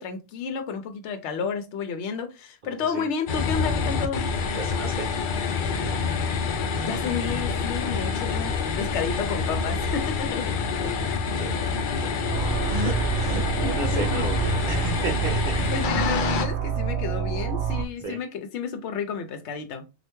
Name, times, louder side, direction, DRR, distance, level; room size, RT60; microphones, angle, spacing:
voice 1, 0.0-4.2 6.8-10.5 13.5-14.2 15.7-19.8, left 6 dB, 80° left, 0.9 m, -31 dB
sound 1, 3.3-16.5, left 5 dB, 60° left, 0.6 m, -27 dB
voice 2, 4.5-5.1 10.4-11.8 12.7-15.8 18.0-18.2, right 2 dB, 45° right, 0.8 m, -34 dB
sound 2, 12.3-17.9, right 8 dB, 80° right, 0.9 m, -27 dB
3.2 x 2.5 x 2.9 m
omnidirectional pair, 1.2 m